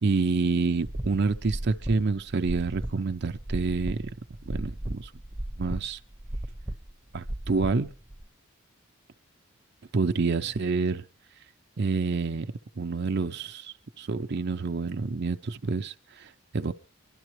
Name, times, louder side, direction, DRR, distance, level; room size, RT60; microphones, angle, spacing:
voice 1, 0.0-4.0 4.4-5.1 5.6-6.0 7.1-7.9 9.9-11.0 11.8-16.7, right 4 dB, 55° right, 0.6 m, -28 dB
sound 1, 0.8-8.2, right 1 dB, 10° right, 0.8 m, -36 dB
24.5 x 12.0 x 3.1 m
head